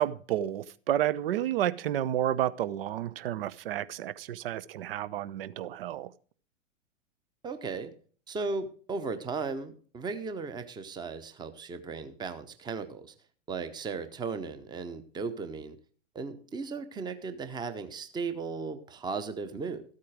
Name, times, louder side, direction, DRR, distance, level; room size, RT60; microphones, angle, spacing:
voice 1, 0.0-6.1, right 12 dB, 50° right, 0.8 m, -30 dB
voice 2, 7.4-7.9 8.3-13.1 13.5-15.8 16.1-19.8, right 4 dB, 10° right, 1.0 m, -36 dB
14.0 x 8.6 x 4.9 m
figure-of-eight pair, 105°, 38 cm